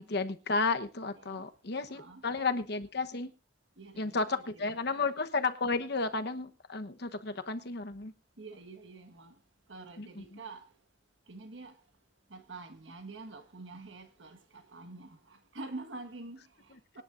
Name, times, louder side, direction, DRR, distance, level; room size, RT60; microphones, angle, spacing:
voice 1, 0.0-3.3 4.0-8.1 10.0-10.4, left 3 dB, 60° left, 1.1 m, -33 dB
voice 2, 1.9-2.2 3.8-5.0 8.4-9.3 9.7-10.6 11.3-11.8 12.3-17.0, right 3 dB, 90° right, 1.6 m, -47 dB
25.0 x 10.5 x 2.6 m
head